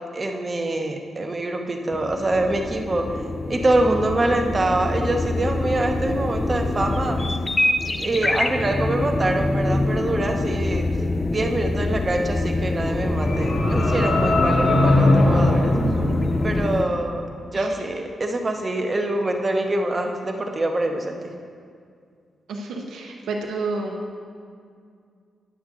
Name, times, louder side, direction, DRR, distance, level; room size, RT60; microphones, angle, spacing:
voice 1, 0.1-3.2 3.5-7.2 8.0-10.9 11.3-15.8 16.4-17.2 17.5-21.2, right 2 dB, 30° right, 3 dB, 0.9 m, -25 dB
sound 1, 1.9-16.8, left 2 dB, 20° left, 0.4 m, -25 dB
sound 2, 12.7-16.9, left 2 dB, 65° left, 2.3 m, -21 dB
voice 2, 22.5-24.0, right 3 dB, 90° right, 1 dB, 0.9 m, -30 dB
10.0 x 6.2 x 3.8 m, 2.2 s
cardioid pair, 90°, 0 cm